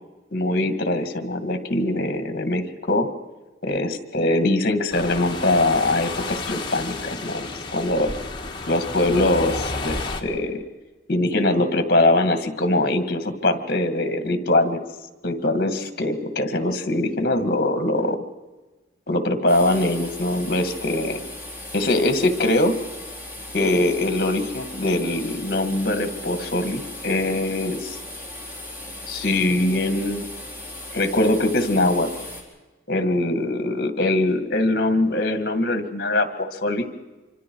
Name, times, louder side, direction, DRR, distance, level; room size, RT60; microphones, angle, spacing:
voice 1, 0.3-3.1 3.6-7.5 7.7-8.1 8.7-10.6 11.1-14.8 15.2-18.2 19.1-21.2 21.7-22.7 23.5-28.0 29.1-30.2 30.9-32.1 32.9-36.9, left 1 dB, 50° left, 9 dB, 1.9 m, -22 dB
sound 1, 4.9-10.2, left 3 dB, 25° left, 1.5 m, -31 dB
sound 2, 19.5-32.4, left 1 dB, 10° right, 4.0 m, -37 dB
26.5 x 24.5 x 4.7 m, 1.2 s
head